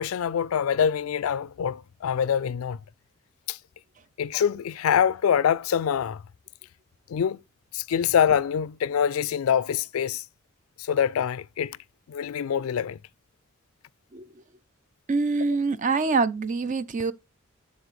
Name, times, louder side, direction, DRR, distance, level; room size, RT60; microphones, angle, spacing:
voice 1, 0.0-2.8 3.5-3.6 4.2-6.2 7.1-7.4 7.7-10.2 10.8-11.8 12.1-13.0, left 8 dB, 85° left, 0.4 m, -25 dB
voice 2, 15.1-17.1, right 4 dB, 35° right, 0.5 m, -25 dB
12.0 x 4.1 x 3.2 m
head